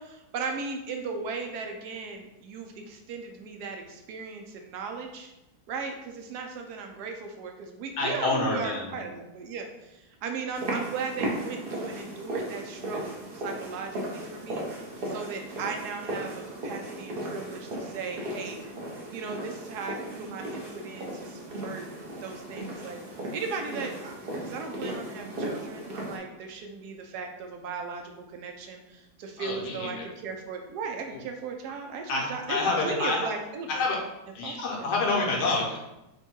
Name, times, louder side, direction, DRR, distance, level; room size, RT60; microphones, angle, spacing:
voice 1, 0.0-5.3 5.7-14.7 15.1-18.6 19.1-21.9 22.2-33.8 34.4-34.9, right 5 dB, 85° right, 3 dB, 1.2 m, -37 dB
voice 2, 8.0-9.0 29.4-30.1 31.1-31.2 32.1-33.2 33.7-34.0 34.3-35.8, left 3 dB, 85° left, -2 dB, 1.5 m, -28 dB
sound 1, 10.5-26.2, right 1 dB, 45° right, 0.8 m, -36 dB
3.6 x 2.2 x 4.3 m, 0.94 s
omnidirectional pair, 1.7 m